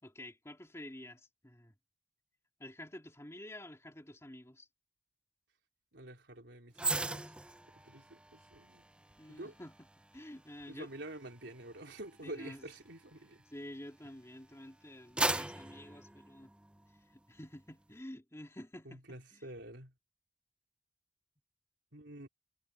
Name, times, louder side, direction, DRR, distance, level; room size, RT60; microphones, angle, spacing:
voice 1, 0.0-1.7 2.6-4.7 9.2-9.9 10.1-10.9 12.2-12.6 13.5-16.5 17.1-19.5, left 1 dB, 15° left, 2.6 m, -49 dB
voice 2, 5.9-7.3 7.7-8.9 9.3-9.5 10.7-13.4 18.8-19.9 21.9-22.3, right 1 dB, 75° right, 3.9 m, -48 dB
sound 1, 6.8-14.2 14.6-17.0 17.4-17.6, right 2 dB, 5° right, 0.4 m, -40 dB
head